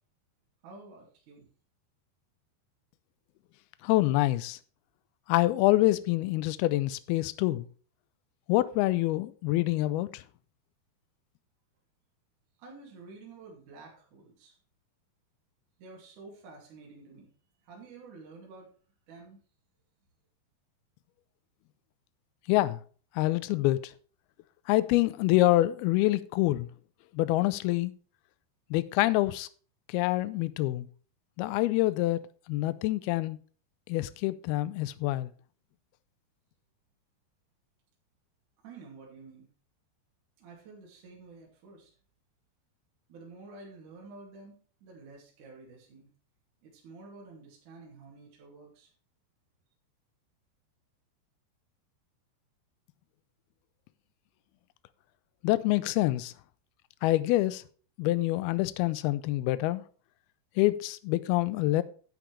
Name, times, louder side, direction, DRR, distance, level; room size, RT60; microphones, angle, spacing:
voice 1, 0.6-1.5 12.6-14.6 15.8-17.3 17.6-18.7 19.1-19.4 38.6-39.5 40.4-41.9 43.1-46.1 46.6-48.9, right 3 dB, 50° right, 3.7 m, -50 dB
voice 2, 3.8-4.6 5.3-7.7 8.5-10.2 22.5-22.8 23.2-23.8 24.7-26.7 27.1-27.9 28.7-29.5 29.9-30.9 31.4-32.2 32.5-33.4 33.9-35.3 55.4-56.3 57.0-57.6 58.0-59.8 60.6-61.8, left 17 dB, 85° left, 2.2 m, -26 dB
11.5 x 8.4 x 3.3 m
omnidirectional pair, 5.0 m